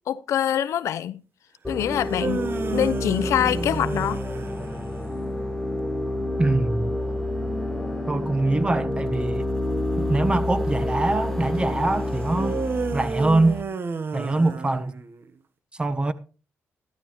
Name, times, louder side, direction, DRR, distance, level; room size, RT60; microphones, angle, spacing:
voice 1, 0.1-1.2 1.7-2.5 2.7-4.2, left 10 dB, 80° left, 0.6 m, -24 dB
sound 1, 1.6-13.6, left 1 dB, 10° left, 1.4 m, -28 dB
sound 2, 1.9-5.2 12.3-15.3, right 5 dB, 50° right, 1.1 m, -31 dB
voice 2, 6.4-6.9 8.1-9.5 10.0-12.6 12.9-13.6 14.1-15.0 15.8-16.1, right 2 dB, 20° right, 1.1 m, -23 dB
14.0 x 13.0 x 3.1 m
cardioid pair, 90°, 5 cm